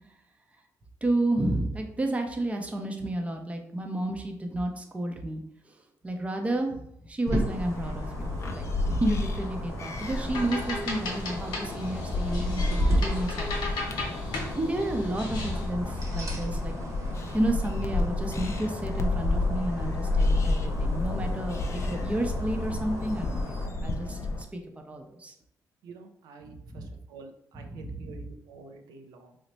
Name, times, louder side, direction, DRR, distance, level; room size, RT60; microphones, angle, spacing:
voice 1, 1.0-13.7 14.6-16.7 17.3-23.6 23.8-24.2 24.5-25.3 26.4-26.9 27.5-28.2, right 1 dB, 20° right, 4 dB, 0.6 m, -31 dB
sound 1, 7.3-24.4, left 2 dB, 45° left, 0.4 m, -31 dB
sound 2, 7.3-23.7, right 1 dB, 50° right, 0.9 m, -36 dB
sound 3, 10.0-15.7, left 2 dB, 85° left, 0.9 m, -36 dB
voice 2, 25.8-29.4, right 4 dB, 90° right, 4 dB, 0.4 m, -48 dB
3.0 x 2.1 x 4.0 m, 0.73 s
cardioid pair, 90°, 7 cm